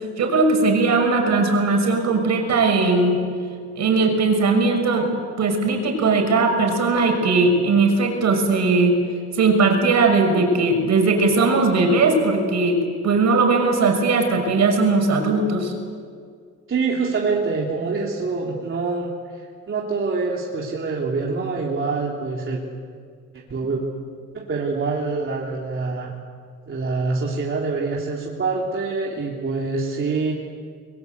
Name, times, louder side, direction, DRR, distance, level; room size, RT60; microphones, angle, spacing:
voice 1, 0.2-3.2 3.8-5.1 5.4-9.0 9.3-15.7, right 3 dB, 65° right, 3 dB, 6.3 m, -19 dB
voice 2, 16.7-22.6 23.3-23.8 24.3-26.1 26.7-30.3, right 4 dB, 40° right, -3 dB, 3.6 m, -25 dB
24.0 x 22.5 x 8.3 m, 2.1 s
cardioid pair, 90°, 30 cm